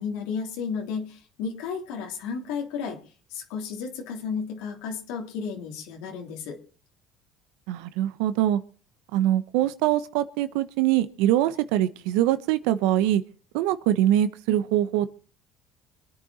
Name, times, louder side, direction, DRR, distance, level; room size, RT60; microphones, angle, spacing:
voice 1, 0.0-3.0 3.3-6.6, left 6 dB, 80° left, 3.2 m, -33 dB
voice 2, 7.7-8.6 9.1-13.2 13.5-15.1, right 12 dB, 85° right, 1.0 m, -23 dB
25.5 x 9.0 x 4.2 m
supercardioid pair, 105°, 0 cm